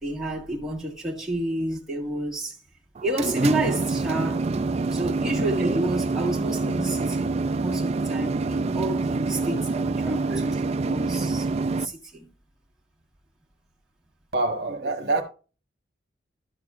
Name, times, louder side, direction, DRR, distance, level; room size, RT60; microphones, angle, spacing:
voice 1, 0.0-2.6 3.0-4.6 4.9-10.6 10.8-11.5 11.7-12.3, right 1 dB, ahead, 1.7 m, -30 dB
sound 1, 2.9-11.9, right 3 dB, 35° right, 0.3 m, -26 dB
voice 2, 10.0-10.5 14.3-15.2, right 2 dB, 55° right, 1.1 m, -27 dB
11.5 x 6.9 x 2.5 m
head